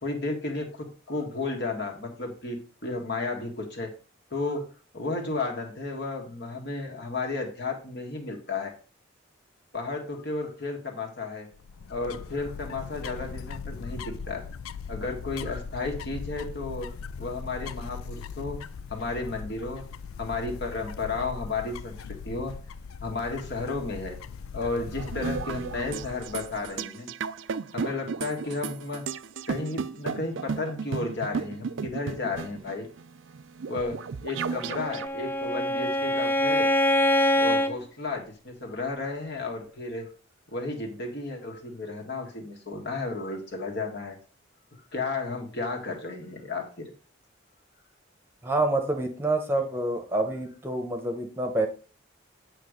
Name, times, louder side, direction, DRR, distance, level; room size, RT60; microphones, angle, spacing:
voice 1, 0.0-3.9 4.3-4.7 4.9-8.7 9.7-11.5 11.9-14.5 14.9-18.6 18.9-19.9 20.2-22.6 23.0-24.2 24.5-27.1 27.7-29.1 29.5-32.9 33.7-36.7 37.4-40.1 40.5-44.2 44.9-46.9, left 3 dB, 55° left, 2 dB, 2.0 m, -33 dB
sound 1, 11.5-26.8, left 6 dB, 90° left, 0.4 m, -40 dB
sound 2, 25.0-35.1, right 5 dB, 65° right, 0.4 m, -34 dB
Bowed string instrument, 34.6-37.8, equal, 10° left, 0.5 m, -24 dB
voice 2, 48.4-51.7, right 2 dB, 10° right, 4 dB, 1.0 m, -27 dB
9.1 x 3.4 x 6.6 m, 0.37 s
head